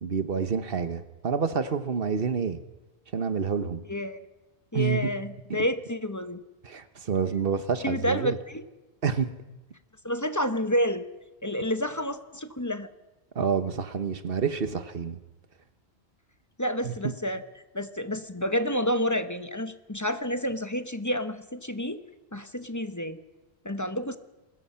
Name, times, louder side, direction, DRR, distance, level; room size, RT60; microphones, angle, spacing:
voice 1, 0.0-2.6 3.1-3.8 4.7-5.1 5.5-5.6 6.6-8.4 9.0-9.3 13.3-15.2 16.8-17.1, right 6 dB, 55° right, 11 dB, 1.3 m, -28 dB
voice 2, 3.9-4.2 4.7-6.4 7.8-8.6 10.0-11.0 11.4-12.9 16.6-17.4 17.7-22.0 22.3-23.2 23.6-24.2, equal, 15° left, 10 dB, 1.0 m, -29 dB
28.0 x 21.0 x 5.7 m, 1.1 s
omnidirectional pair, 1.1 m